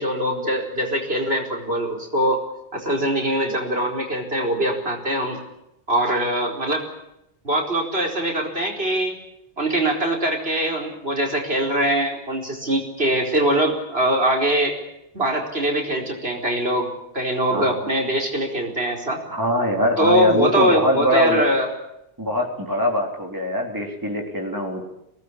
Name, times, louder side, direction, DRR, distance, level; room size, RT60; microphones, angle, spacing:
voice 1, 0.0-2.4 2.7-5.4 5.9-6.8 7.4-9.2 9.6-14.8 15.1-16.9 17.1-19.2 20.0-21.7, right 1 dB, 65° right, 1 dB, 4.9 m, -22 dB
voice 2, 19.3-21.5 22.2-24.8, equal, 20° right, 1 dB, 3.6 m, -22 dB
25.0 x 19.0 x 9.9 m, 0.85 s
omnidirectional pair, 1.1 m